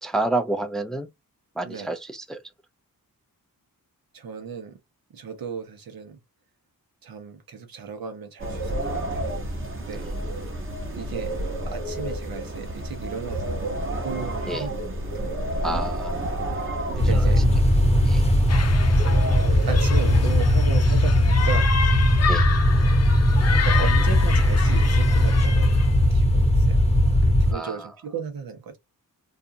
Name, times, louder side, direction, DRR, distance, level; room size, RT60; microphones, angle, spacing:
voice 1, 0.0-1.1 1.6-2.4 10.0-10.1 14.5-14.7 15.6-16.2 17.1-17.3 18.1-18.2 22.3-22.5 27.5-27.9, right 2 dB, ahead, 0.4 m, -29 dB
voice 2, 4.1-4.8 5.1-6.2 7.0-9.2 9.7-10.1 10.9-11.3 11.7-15.5 17.0-17.4 19.7-21.7 23.5-26.8 27.2-28.8, right 6 dB, 80° right, 0.9 m, -35 dB
sound 1, 8.4-20.4, right 1 dB, 35° right, 1.1 m, -31 dB
sound 2, 17.0-27.5, left 1 dB, 20° left, 0.9 m, -19 dB
sound 3, 18.5-25.9, left 6 dB, 45° left, 0.6 m, -30 dB
2.6 x 2.3 x 2.6 m
wide cardioid pair, 95°, 35 cm